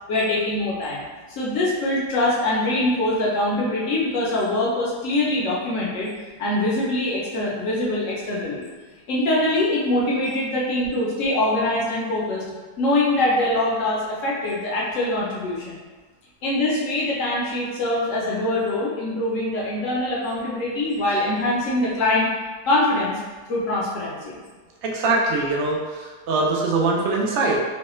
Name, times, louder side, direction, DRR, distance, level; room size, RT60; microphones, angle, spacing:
voice 1, 0.1-1.0 1.3-6.1 6.4-8.7 9.1-12.4 12.8-15.8 16.4-22.3 22.7-23.2 23.5-24.4, left 1 dB, 65° left, -5 dB, 0.8 m, -23 dB
voice 2, 24.8-27.6, right 3 dB, 80° right, -2 dB, 0.6 m, -22 dB
3.1 x 2.1 x 3.0 m, 1.4 s
omnidirectional pair, 1.8 m